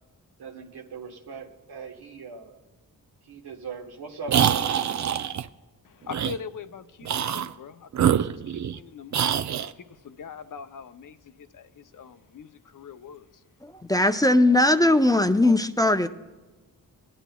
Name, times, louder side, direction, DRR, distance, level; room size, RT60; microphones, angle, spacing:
voice 1, 0.4-2.6 3.2-4.8, right 5 dB, 85° right, 2 dB, 1.3 m, -40 dB
sound 1, 4.3-5.4 6.1-6.4 7.0-7.5 7.9-8.8 9.1-9.7, right 9 dB, 50° right, 0.5 m, -24 dB
voice 2, 5.8-9.4 9.8-13.4, left 6 dB, 55° left, 11 dB, 0.6 m, -42 dB
voice 3, 13.6-16.1, left 1 dB, 10° left, 9 dB, 0.5 m, -20 dB
17.5 x 10.0 x 2.3 m, 1.2 s
cardioid pair, 60°, 37 cm